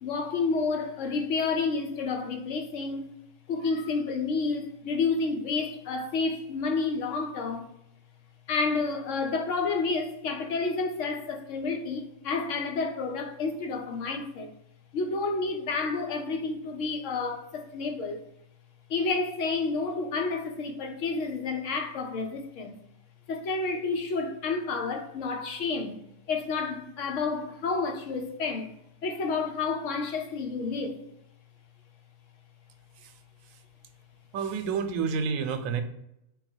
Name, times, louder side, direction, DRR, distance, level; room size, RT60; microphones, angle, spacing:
voice 1, 0.0-3.1 3.5-7.7 8.5-14.5 14.9-18.2 18.9-22.8 23.3-26.0 26.3-28.7 29.0-31.0, left 4 dB, 75° left, 1.0 m, -30 dB
voice 2, 34.3-35.8, right 6 dB, 80° right, 1.0 m, -29 dB
4.0 x 2.3 x 4.3 m
omnidirectional pair, 1.3 m